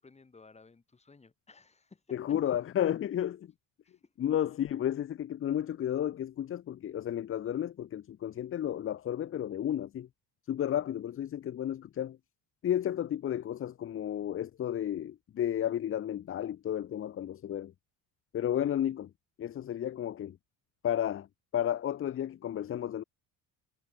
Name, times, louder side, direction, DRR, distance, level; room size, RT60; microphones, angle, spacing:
voice 1, 0.0-2.2 3.8-4.1, left 4 dB, 15° left, 7.1 m, -57 dB
voice 2, 2.1-3.5 4.2-10.1 10.5-12.2 12.6-17.7 18.3-19.1 19.4-20.4 20.8-21.3 21.5-23.0, left 10 dB, 30° left, 0.8 m, -32 dB
cardioid pair, 160°, 41 cm